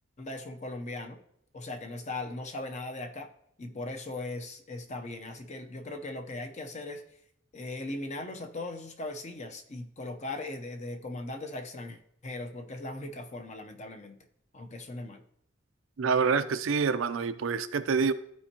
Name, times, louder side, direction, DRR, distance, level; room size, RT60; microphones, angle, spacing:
voice 1, 0.2-1.2 1.5-3.3 3.6-7.0 7.5-14.2 14.5-15.2, left 2 dB, 35° left, 6 dB, 0.7 m, -39 dB
voice 2, 16.0-18.1, right 5 dB, 80° right, 12 dB, 0.5 m, -27 dB
13.0 x 4.4 x 2.8 m, 0.72 s
head